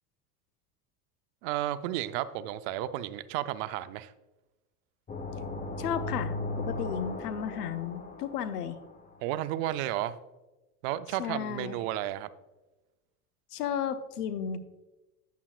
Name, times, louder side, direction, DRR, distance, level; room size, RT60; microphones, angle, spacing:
voice 1, 1.4-4.1 9.2-10.2 10.8-12.3, right 13 dB, 60° right, 13 dB, 0.6 m, -32 dB
sound 1, 5.1-8.9, left 2 dB, 20° left, 0.9 m, -37 dB
voice 2, 5.8-8.8 11.2-11.8 13.5-14.6, left 8 dB, 85° left, 11 dB, 0.8 m, -33 dB
9.2 x 8.3 x 2.4 m, 1.1 s
hypercardioid pair, 85°, 46 cm